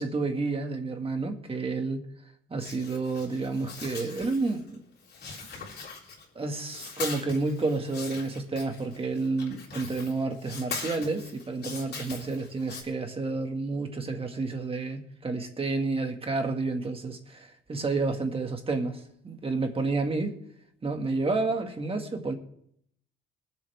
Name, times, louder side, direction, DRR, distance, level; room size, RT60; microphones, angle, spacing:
voice 1, 0.0-2.0 2.5-4.8 6.4-20.4 20.8-22.3, right 3 dB, 30° right, 1.9 m, -30 dB
sound 1, 2.6-4.8 5.0-6.4 6.7-12.8, left 4 dB, 55° left, 3.5 m, -41 dB
22.5 x 7.6 x 3.5 m
cardioid pair, 90°, 20 cm